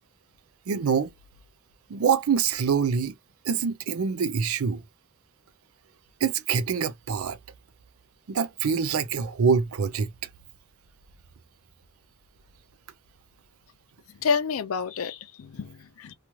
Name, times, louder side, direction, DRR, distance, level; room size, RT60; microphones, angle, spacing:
voice 1, 0.7-1.1 1.9-3.1 3.4-4.8 6.2-7.4 8.3-10.1, right 6 dB, 85° right, 0.5 m, -25 dB
voice 2, 14.2-16.1, left 5 dB, 75° left, 0.5 m, -29 dB
3.0 x 2.3 x 2.7 m
head